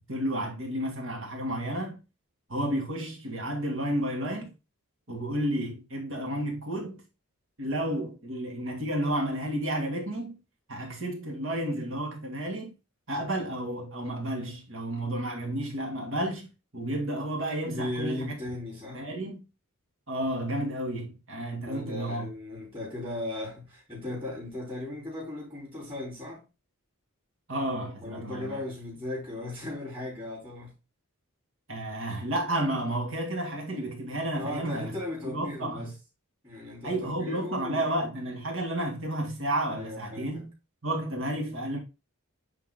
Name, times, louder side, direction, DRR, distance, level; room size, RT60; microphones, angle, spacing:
voice 1, 0.1-2.0 2.5-4.5 5.1-7.0 7.6-10.4 10.7-12.8 13.1-18.3 18.9-19.4 20.1-22.3 27.5-28.6 31.7-35.0 35.2-35.9 36.8-40.5 40.8-41.8, right 1 dB, 60° right, 2.5 m, -31 dB
voice 2, 17.6-19.0 21.6-26.4 28.0-30.7 34.3-35.9 36.4-37.8 39.7-40.4, left 1 dB, 20° right, 3.3 m, -37 dB
9.0 x 3.7 x 3.7 m
head